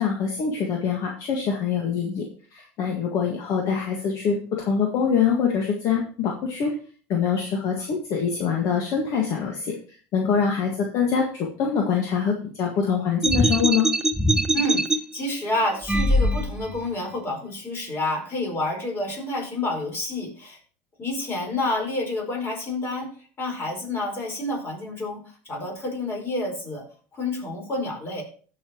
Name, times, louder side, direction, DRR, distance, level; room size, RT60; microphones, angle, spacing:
voice 1, 0.0-2.2 2.5-6.7 7.1-9.8 10.1-13.9, left 6 dB, 50° left, 1 dB, 1.8 m, -24 dB
sound 1, 13.2-15.0 15.8-16.8, right 1 dB, 10° right, 0.8 m, -22 dB
voice 2, 14.5-20.6 21.0-23.1 23.4-26.8 27.1-28.2, left 2 dB, 30° left, 1 dB, 4.9 m, -29 dB
16.5 x 5.8 x 3.0 m, 0.42 s
supercardioid pair, 110°, 7 cm